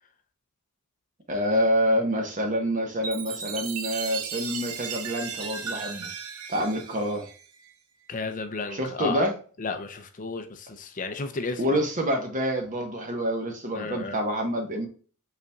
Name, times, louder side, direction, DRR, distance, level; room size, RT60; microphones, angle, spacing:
voice 1, 1.3-6.1 6.5-7.3 8.7-9.3 11.6-14.9, equal, 35° right, 1.1 m, -27 dB
Chime, 3.0-7.7, right 6 dB, 75° right, 0.7 m, -36 dB
voice 2, 8.1-9.2 9.6-11.8 13.8-14.2, left 4 dB, 35° left, 0.6 m, -33 dB
5.5 x 3.9 x 2.3 m
head